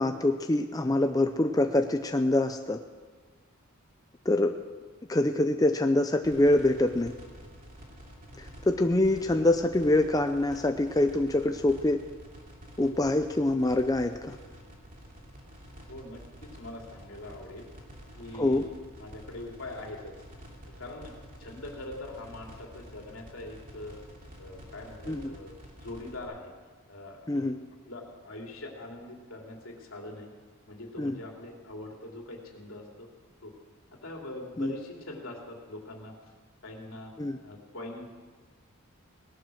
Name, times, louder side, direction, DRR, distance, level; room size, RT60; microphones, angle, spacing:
voice 1, 0.0-2.8 4.3-4.5 5.1-7.1 8.4-12.0 12.8-14.4 18.4-18.6 25.1-25.2 27.3-27.6 31.0-31.2 34.6-34.7 37.2-37.4, left 1 dB, 15° left, 6 dB, 0.5 m, -25 dB
sound 1, 6.2-26.2, equal, 40° right, 2.9 m, -49 dB
voice 2, 15.9-17.7 18.2-18.7 19.0-20.1 20.8-21.1 21.4-24.0 24.4-25.6 25.8-26.5 26.9-27.6 27.9-30.3 30.7-33.1 33.4-33.5 33.9-36.1 36.6-37.1 37.4-38.0, left 1 dB, 75° left, 0 dB, 2.9 m, -42 dB
18.5 x 12.0 x 6.4 m, 1.4 s
head